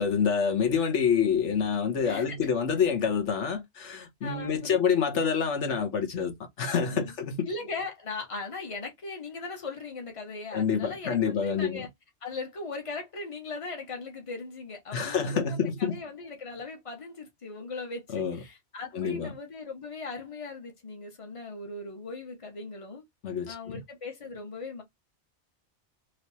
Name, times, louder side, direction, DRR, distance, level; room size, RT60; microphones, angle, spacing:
voice 1, 0.0-7.5 10.5-11.8 14.9-16.0 18.1-18.4 18.9-19.3 23.2-23.8, left 6 dB, 80° left, 1.3 m, -27 dB
voice 2, 2.0-2.4 4.2-4.8 5.1-5.3 6.9-7.1 7.4-11.9 12.2-23.0 23.5-24.8, left 3 dB, 30° left, 1.2 m, -39 dB
3.2 x 3.1 x 4.1 m
omnidirectional pair, 1.2 m